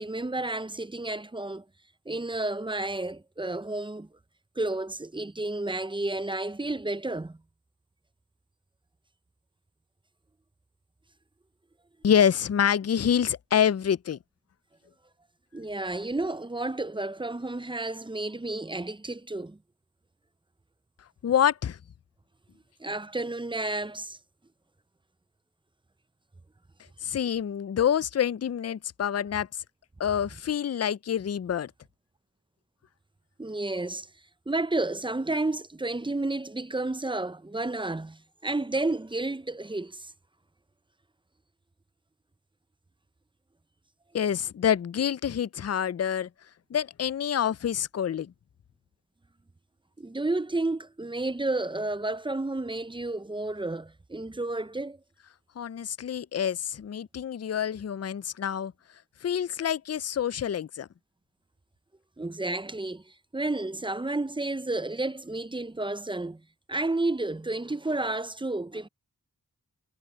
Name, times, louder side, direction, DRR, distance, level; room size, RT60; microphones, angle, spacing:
voice 1, 0.0-1.6 2.1-4.1 4.6-7.4 15.5-19.6 22.8-24.2 33.4-34.1 34.5-40.1 50.0-55.0 62.2-66.4 66.7-68.9, right 2 dB, 15° right, 0.5 m, -31 dB
voice 2, 12.0-14.2 21.2-21.8 27.0-29.5 30.0-31.7 44.1-46.3 46.7-48.3 55.6-58.7 59.2-60.9, left 9 dB, 45° left, 0.4 m, -27 dB
wide cardioid pair, 40°, 37 cm